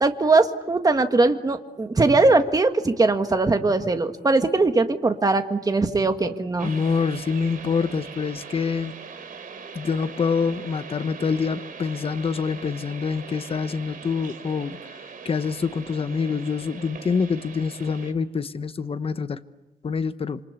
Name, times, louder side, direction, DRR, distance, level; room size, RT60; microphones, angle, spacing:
voice 1, 0.0-6.7, right 3 dB, 20° right, 1.7 m, -20 dB
voice 2, 6.6-8.9 9.7-19.4 19.8-20.4, left 5 dB, 35° left, 1.0 m, -26 dB
sound 1, 6.6-18.1, right 5 dB, 55° right, 3.5 m, -41 dB
27.5 x 26.0 x 8.3 m
wide cardioid pair, 150°, 17 cm